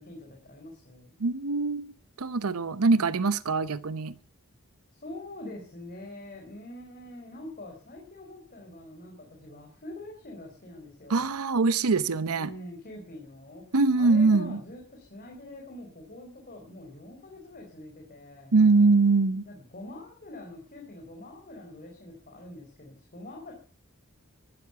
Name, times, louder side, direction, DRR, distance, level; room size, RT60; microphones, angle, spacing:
voice 1, 0.0-1.1 4.9-11.2 12.3-13.6 14.0-18.5 19.5-23.5, left 1 dB, 40° left, 4.3 m, -44 dB
voice 2, 1.2-1.9 2.2-4.1 11.1-12.5 13.7-14.6 18.5-19.5, right 3 dB, 90° right, 0.8 m, -23 dB
14.0 x 12.0 x 7.0 m
head